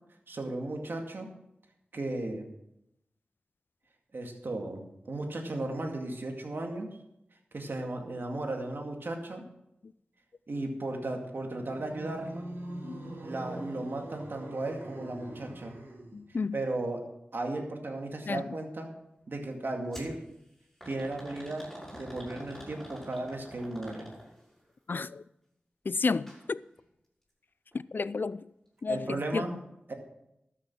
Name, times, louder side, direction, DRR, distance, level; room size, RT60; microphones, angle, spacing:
voice 1, 0.3-1.3 1.9-2.5 4.1-6.9 7.5-9.4 10.5-12.5 13.2-15.8 16.5-17.1 17.3-18.9 19.3-20.2 20.8-24.1 28.9-29.6 29.9-30.0, right 2 dB, 65° right, 2.2 m, -35 dB
sound 1, 11.6-16.3, right 1 dB, 85° right, 3.2 m, -43 dB
voice 2, 16.1-16.5 18.3-18.4 24.9-25.2 25.9-26.6 27.9-28.4 28.8-29.5, left 4 dB, 60° left, 0.4 m, -31 dB
sound 2, 19.9-20.2 20.8-24.5 26.1-26.4 26.8-26.9 27.7-27.8, equal, 5° left, 5.8 m, -46 dB
13.0 x 7.4 x 6.1 m
wide cardioid pair, 55°, 4 cm